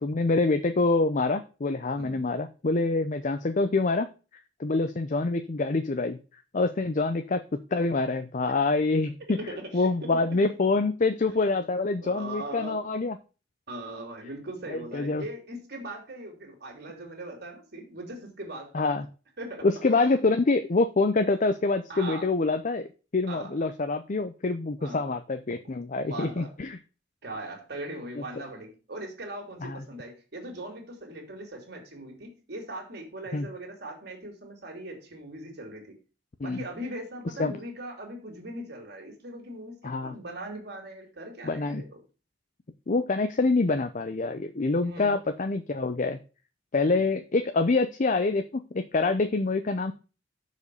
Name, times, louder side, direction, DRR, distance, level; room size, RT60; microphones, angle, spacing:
voice 1, 0.0-4.1 4.6-6.2 6.5-13.2 14.7-15.2 18.7-19.1 19.6-26.8 28.2-28.3 29.6-29.8 33.3-33.5 36.4-36.6 37.4-37.6 39.8-40.1 41.4-41.8 42.9-46.2 46.7-49.9, left 3 dB, 45° left, 8 dB, 0.6 m, -26 dB
voice 2, 9.4-10.2 12.0-12.8 13.7-19.1 19.4-19.7 21.9-22.3 23.3-23.5 24.8-25.1 25.6-25.7 26.0-26.5 27.2-36.0 36.4-42.0 44.8-45.2 46.8-47.0, right 1 dB, 60° right, 1 dB, 3.0 m, -40 dB
6.6 x 5.1 x 6.9 m, 0.34 s
head